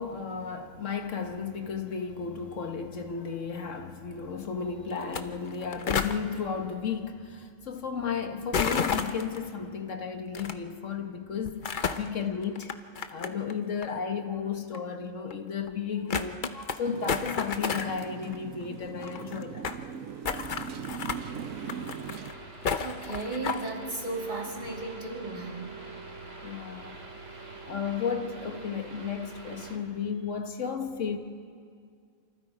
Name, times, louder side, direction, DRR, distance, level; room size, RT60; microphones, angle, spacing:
voice 1, 0.0-12.7 13.1-19.7 26.4-27.0 27.6-31.2, left 6 dB, 70° left, 1.5 m, -33 dB
sound 1, 5.0-5.2 5.5-6.2 8.5-9.4 10.3-10.5 11.4-12.1 12.6-13.5 13.8-13.9 14.7-14.8 15.3-15.4 15.7-15.8 16.1-16.8 17.1-18.0 18.3-18.4 18.6-18.7 18.9-19.8 20.2-21.2 21.6-22.3 22.6-23.7, left 6 dB, 45° left, 0.9 m, -31 dB
Motorcycle, 16.8-22.3, right 7 dB, 85° right, 1.2 m, -40 dB
sound 2, 21.1-29.8, right 3 dB, 65° right, 2.7 m, -45 dB
voice 2, 22.8-25.6, right 3 dB, 35° right, 2.9 m, -35 dB
28.0 x 25.5 x 4.9 m
omnidirectional pair, 1.3 m